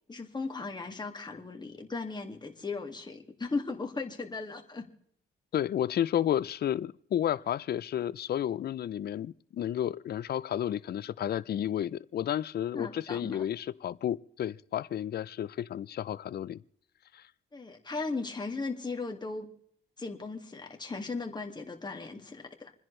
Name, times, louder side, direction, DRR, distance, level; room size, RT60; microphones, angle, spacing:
voice 1, 0.1-4.9 12.7-13.4 17.5-19.5 20.0-22.7, left 3 dB, 20° left, 2.2 m, -37 dB
voice 2, 5.5-16.6 17.1-17.2, left 10 dB, 55° left, 0.6 m, -32 dB
28.5 x 10.5 x 3.3 m
cardioid pair, 100°, 20 cm